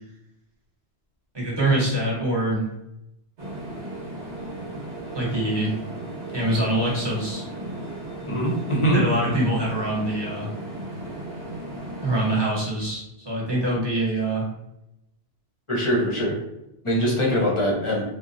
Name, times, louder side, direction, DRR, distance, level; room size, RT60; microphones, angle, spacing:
voice 1, 1.3-2.6 5.1-5.8 6.3-7.4 8.9-10.5 12.0-14.5, right 1 dB, 25° right, -5 dB, 0.8 m, -24 dB
sound 1, 3.4-12.4, right 1 dB, 70° right, 1.0 m, -35 dB
voice 2, 8.3-9.1 15.7-16.3 16.8-18.0, equal, 35° left, -4 dB, 0.5 m, -22 dB
2.8 x 2.1 x 2.5 m, 0.87 s
omnidirectional pair, 1.1 m